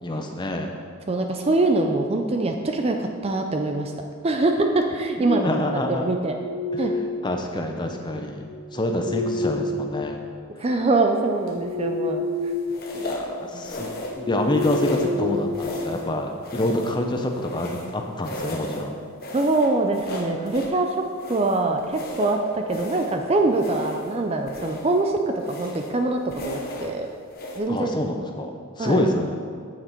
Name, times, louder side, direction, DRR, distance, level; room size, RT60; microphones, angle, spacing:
voice 1, 0.0-0.7 5.2-6.1 7.2-8.4 8.7-10.2 12.9-19.0 27.7-28.5 28.8-29.3, left 1 dB, 20° left, 3 dB, 0.6 m, -26 dB
voice 2, 1.1-3.9 4.2-5.5 5.9-6.3 6.8-6.9 10.6-12.3 13.5-13.9 19.3-21.0 21.3-25.2 25.5-27.1 27.6-27.9 28.8-29.0, right 2 dB, 25° right, 4 dB, 0.4 m, -23 dB
sound 1, 5.9-7.4 8.4-10.5 10.9-12.8 13.1-13.3 13.8-16.2, left 2 dB, ahead, 1.5 m, -30 dB
sound 2, 11.5-11.8 12.7-13.3 13.6-14.2 14.5-15.2 15.5-16.1 16.4-17.9 18.2-18.9 19.2-20.8 21.2-23.2 23.5-24.2 24.5-25.0 25.4-26.0 26.3-26.9 27.3-27.6, left 1 dB, 40° left, 1.0 m, -35 dB
7.7 x 6.9 x 4.5 m, 2.1 s
head